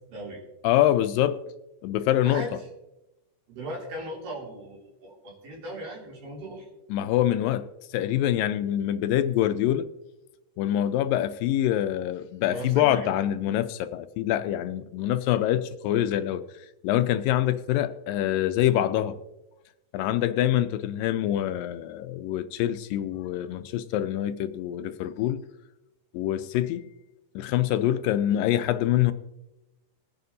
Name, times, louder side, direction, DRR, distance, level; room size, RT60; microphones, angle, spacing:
voice 1, 0.1-0.4 2.2-2.6 3.5-6.7 12.5-13.1, right 1 dB, 75° right, -3 dB, 4.6 m, -38 dB
voice 2, 0.6-1.4 1.8-2.4 6.9-9.9 10.6-19.2 19.9-25.4 26.1-26.9 27.4-29.1, left 12 dB, 80° left, 11 dB, 2.2 m, -25 dB
21.5 x 9.3 x 2.7 m, 0.96 s
omnidirectional pair, 4.1 m